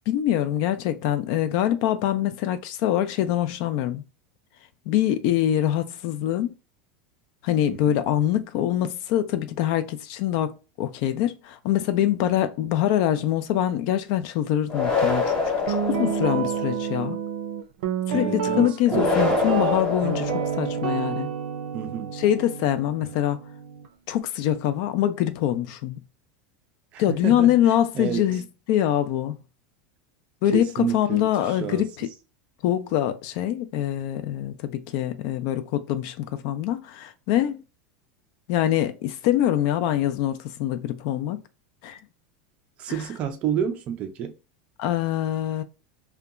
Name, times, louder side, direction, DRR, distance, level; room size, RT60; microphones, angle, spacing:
voice 1, 0.1-4.0 4.9-6.5 7.4-17.2 18.1-21.3 22.1-23.4 24.1-26.0 27.0-28.4 28.7-29.4 30.4-32.1 32.6-37.6 38.5-41.4 41.8-42.0 42.9-43.0 44.8-45.6, left 11 dB, 45° left, 0.3 m, -24 dB
sound 1, 14.7-16.8 18.9-20.9, left 4 dB, 15° left, 0.8 m, -26 dB
Guitar, 15.7-23.9, right 7 dB, 80° right, 0.5 m, -29 dB
voice 2, 18.1-19.5 21.7-22.1 26.9-27.5 27.9-28.3 30.5-31.8 42.8-44.3, right 8 dB, 30° right, 0.4 m, -30 dB
2.8 x 2.2 x 2.4 m
supercardioid pair, 175°, 4 cm